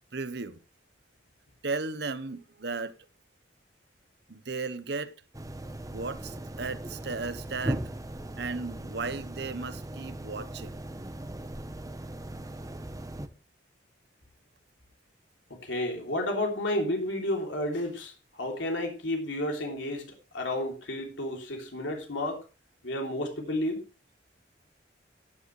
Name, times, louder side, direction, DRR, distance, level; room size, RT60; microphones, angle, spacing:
voice 1, 0.1-0.6 1.6-2.9 4.3-5.1 5.9-7.8 8.3-10.7, right 4 dB, 60° right, 1.0 m, -35 dB
sound 1, 5.3-13.3, right 1 dB, 20° right, 1.0 m, -38 dB
voice 2, 15.6-22.4 22.8-23.8, left 1 dB, 85° left, 3.2 m, -31 dB
14.5 x 10.0 x 3.3 m
head